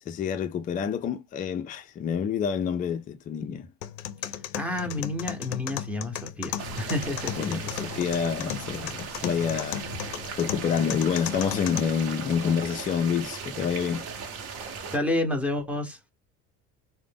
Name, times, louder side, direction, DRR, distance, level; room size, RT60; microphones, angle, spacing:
voice 1, 0.1-3.7 7.4-14.1, left 7 dB, 25° left, 0.4 m, -28 dB
sound 1, 3.8-11.8, left 11 dB, 90° left, 0.5 m, -36 dB
voice 2, 4.2-8.2 14.6-16.0, left 2 dB, 5° right, 0.7 m, -31 dB
sound 2, 6.6-15.0, right 5 dB, 50° right, 0.9 m, -38 dB
2.5 x 2.1 x 3.3 m
cardioid pair, 120°, 32 cm